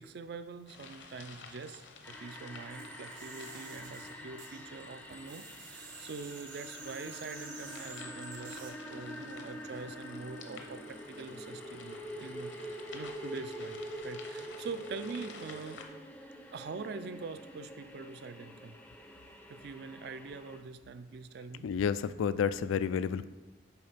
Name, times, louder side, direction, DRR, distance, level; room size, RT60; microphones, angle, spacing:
voice 1, 0.0-15.8 16.5-18.8 19.5-21.7, right 4 dB, 55° right, 11 dB, 0.4 m, -44 dB
sound 1, 0.7-15.8, left 4 dB, 65° left, 0.8 m, -52 dB
sound 2, 2.0-20.6, equal, 5° left, 0.4 m, -46 dB
sound 3, 2.7-4.9 5.1-8.7, right 5 dB, 75° right, 1.1 m, -50 dB
voice 2, 21.6-23.2, left 7 dB, 80° left, 14 dB, 0.3 m, -30 dB
7.0 x 4.4 x 5.0 m, 1.2 s
head